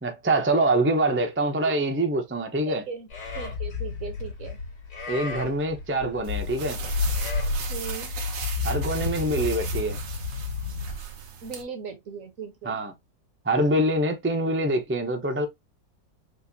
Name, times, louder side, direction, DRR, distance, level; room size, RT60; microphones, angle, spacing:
voice 1, 0.0-2.8 5.1-6.8 8.6-10.0 12.6-12.9 13.4-15.5, right 1 dB, 15° right, 0.4 m, -25 dB
voice 2, 2.6-3.1 3.3-4.6 7.7-8.1 11.4-12.8, right 6 dB, 55° right, 1.2 m, -38 dB
Livestock farm animals working animals, 3.1-11.0, left 4 dB, 85° left, 3.8 m, -31 dB
sound 1, 6.2-11.6, right 6 dB, 80° right, 1.7 m, -38 dB
6.5 x 2.6 x 2.7 m
omnidirectional pair, 1.9 m